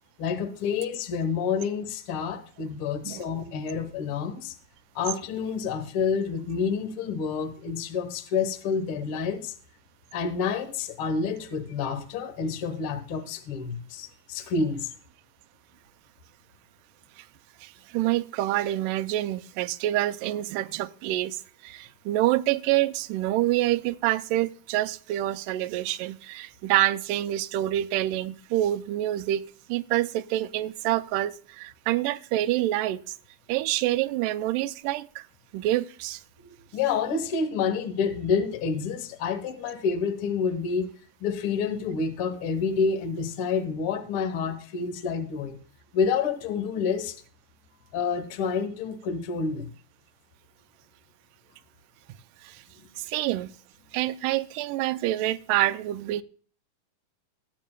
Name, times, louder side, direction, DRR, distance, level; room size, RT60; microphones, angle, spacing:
voice 1, 0.2-4.6 4.9-9.5 10.1-14.9 36.4-40.9 41.2-45.6 45.9-47.2 47.9-49.7, left 5 dB, 60° left, 1.4 m, -28 dB
voice 2, 17.6-29.4 29.7-33.2 33.5-35.3 35.5-36.2 52.4-52.6 53.0-53.5 53.9-56.2, right 15 dB, 80° right, 2.1 m, -27 dB
21.0 x 8.3 x 2.2 m
omnidirectional pair, 3.9 m